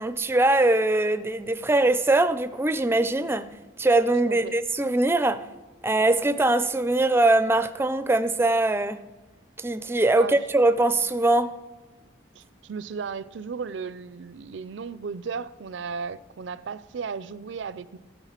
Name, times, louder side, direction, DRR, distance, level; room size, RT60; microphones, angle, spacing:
voice 1, 0.0-3.5 3.8-5.4 5.8-9.0 9.6-11.5, right 2 dB, 10° right, 0.4 m, -22 dB
voice 2, 4.3-4.6 10.2-10.4 12.3-18.0, right 5 dB, 70° right, 0.4 m, -35 dB
14.0 x 8.0 x 5.8 m
head